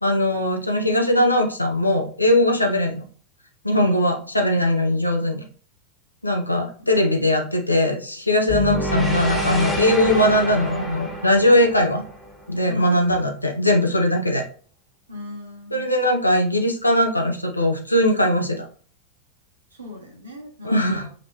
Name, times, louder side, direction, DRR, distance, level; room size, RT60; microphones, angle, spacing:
voice 1, 0.0-3.1 3.6-5.4 6.2-12.0 12.5-14.4 15.7-18.7 20.6-21.1, left 1 dB, 85° left, 2 dB, 0.5 m, -20 dB
voice 2, 3.8-4.3 6.8-6.9 12.7-13.2 15.1-15.9 19.7-21.1, left 2 dB, 75° right, -1 dB, 1.0 m, -38 dB
sound 1, 8.5-12.7, equal, ahead, 1.3 m, -27 dB
5.0 x 3.0 x 2.8 m, 0.43 s
figure-of-eight pair, 90°, 0 cm